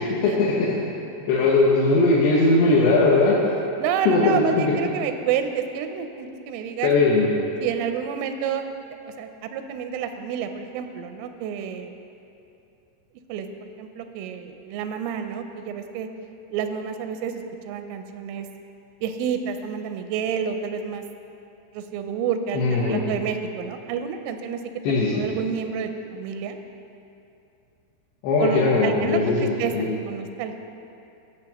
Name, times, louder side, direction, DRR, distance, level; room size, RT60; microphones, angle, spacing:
voice 1, 0.2-0.7 1.3-3.4 4.1-4.7 6.8-7.3 22.5-23.0 24.8-25.1 28.2-29.9, left 3 dB, 75° left, -6 dB, 2.6 m, -19 dB
voice 2, 3.8-6.9 7.6-8.7 9.2-11.9 13.3-16.1 16.5-18.5 19.0-21.0 21.7-24.6 25.1-26.6 28.4-30.5, right 7 dB, 90° right, 7 dB, 3.1 m, -29 dB
17.5 x 6.5 x 2.9 m, 2.7 s
omnidirectional pair, 5.6 m